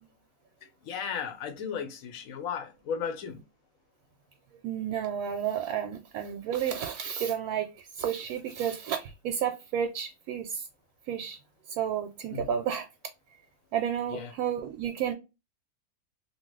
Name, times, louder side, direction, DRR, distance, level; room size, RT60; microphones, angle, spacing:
voice 1, 0.6-3.4 12.3-12.5 14.1-14.3, left 7 dB, 70° left, 1.0 m, -35 dB
voice 2, 4.6-10.7 11.1-11.4 11.8-12.9 13.7-15.1, right 9 dB, 80° right, 1.0 m, -31 dB
3.0 x 2.4 x 3.0 m
omnidirectional pair, 1.6 m